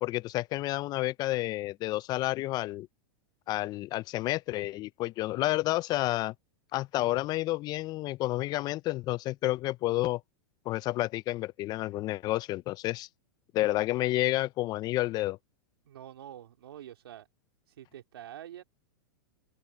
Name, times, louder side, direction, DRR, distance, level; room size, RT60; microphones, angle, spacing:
voice 1, 0.0-2.9 3.5-6.3 6.7-10.2 10.7-13.1 13.5-15.4, left 17 dB, 35° left, 0.5 m, -30 dB
voice 2, 15.8-17.3 17.7-18.6, right 11 dB, 85° right, 3.1 m, -46 dB
open air
hypercardioid pair, 130°, 13 cm